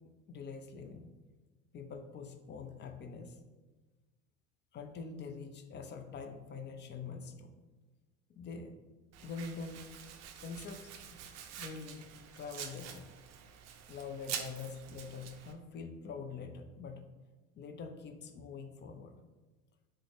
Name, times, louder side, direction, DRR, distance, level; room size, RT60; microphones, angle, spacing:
voice 1, 0.3-1.1 1.7-3.4 4.7-7.5 8.3-8.7 9.2-9.8 10.4-11.2 11.5-12.1 12.4-13.1 13.9-17.1 17.6-19.2, left 5 dB, 35° left, 6 dB, 0.4 m, -45 dB
Domestic sounds home sounds, 9.1-15.5, right 8 dB, 50° right, 0.5 m, -46 dB
3.6 x 2.1 x 3.3 m, 1.2 s
supercardioid pair, 80°, 34 cm